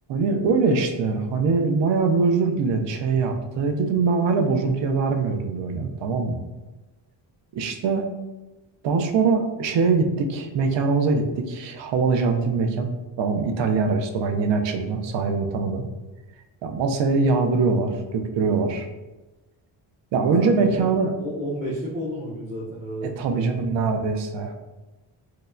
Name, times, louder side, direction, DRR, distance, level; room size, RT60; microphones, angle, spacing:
voice 1, 0.1-6.4 7.5-8.1 8.8-12.9 13.2-15.8 16.6-18.9 20.1-21.1 23.0-24.6, right 4 dB, 60° right, 5 dB, 0.5 m, -23 dB
voice 2, 20.4-20.9 21.1-23.5, equal, 20° right, -10 dB, 0.6 m, -32 dB
4.5 x 2.1 x 2.5 m, 1.1 s
wide cardioid pair, 175°, 49 cm